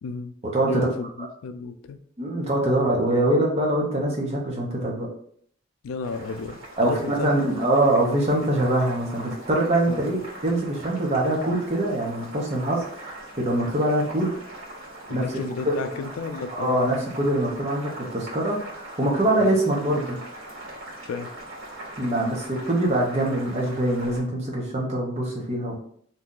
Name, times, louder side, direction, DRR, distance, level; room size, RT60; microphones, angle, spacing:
voice 1, 0.0-0.3 0.6-2.0 5.8-7.3 9.9-10.2 15.1-16.9 19.4-19.5 21.1-21.4, left 4 dB, 85° left, 9 dB, 0.3 m, -32 dB
voice 2, 0.5-0.9 2.2-5.1 6.8-14.3 15.1-15.2 15.6-16.0 16.5-20.2 22.0-25.8, right 1 dB, 30° right, -2 dB, 0.7 m, -24 dB
Boiling, 6.0-24.2, right 1 dB, 75° right, 1.4 m, -41 dB
2.7 x 2.3 x 3.7 m, 0.63 s
head